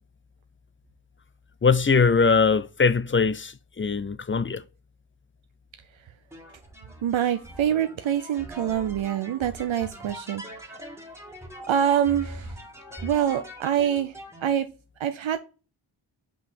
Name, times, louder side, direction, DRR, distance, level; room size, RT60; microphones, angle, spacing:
voice 1, 1.6-4.6, left 5 dB, 25° left, 0.4 m, -21 dB
sound 1, 6.3-14.5, right 1 dB, 5° right, 1.8 m, -42 dB
voice 2, 7.0-11.0 11.6-12.6 13.0-14.7 15.0-15.4, right 9 dB, 75° right, 0.6 m, -26 dB
5.4 x 5.4 x 4.2 m
wide cardioid pair, 75°, 48 cm